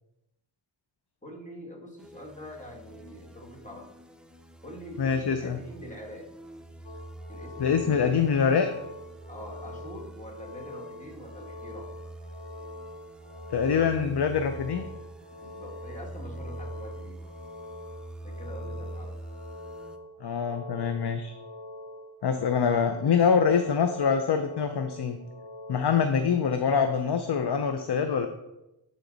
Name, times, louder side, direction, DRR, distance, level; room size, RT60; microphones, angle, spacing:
voice 1, 1.2-3.9 4.6-6.3 7.3-8.3 9.3-11.9 15.4-17.2 18.2-19.2, equal, 15° left, -2 dB, 1.7 m, -44 dB
sound 1, 2.0-20.0, right 1 dB, ahead, 0.5 m, -45 dB
voice 2, 5.0-5.6 7.6-8.7 13.5-14.8 20.2-21.3 22.2-25.2 25.7-28.3, left 6 dB, 60° left, 7 dB, 0.6 m, -25 dB
sound 2, 6.8-26.1, left 1 dB, 90° left, 0.9 m, -45 dB
9.9 x 4.5 x 4.0 m, 0.92 s
wide cardioid pair, 85°, 46 cm